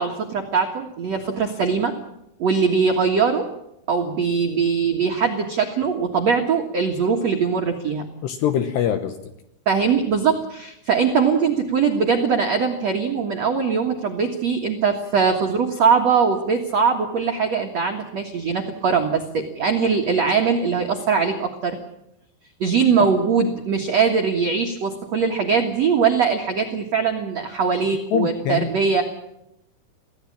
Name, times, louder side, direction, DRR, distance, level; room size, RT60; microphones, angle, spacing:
voice 1, 0.0-1.9 2.4-3.5 3.9-8.1 9.6-21.8 22.6-29.0, right 5 dB, 70° right, 2 dB, 1.6 m, -21 dB
voice 2, 8.2-9.3 28.1-28.7, left 9 dB, 75° left, 9 dB, 2.6 m, -23 dB
24.0 x 16.5 x 8.7 m, 0.82 s
omnidirectional pair, 5.9 m